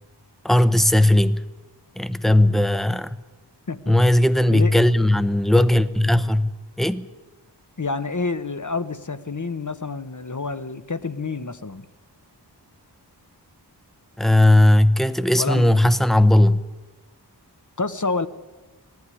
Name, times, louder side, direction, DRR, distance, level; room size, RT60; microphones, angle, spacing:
voice 1, 0.4-1.4 2.0-3.2 3.9-6.5 6.8-7.0 14.2-16.6, left 1 dB, ahead, 0.8 m, -17 dB
voice 2, 4.5-4.8 7.8-11.8 15.4-15.7 17.8-18.3, left 4 dB, 45° left, 1.0 m, -28 dB
19.0 x 14.0 x 9.7 m
wide cardioid pair, 45°, 42 cm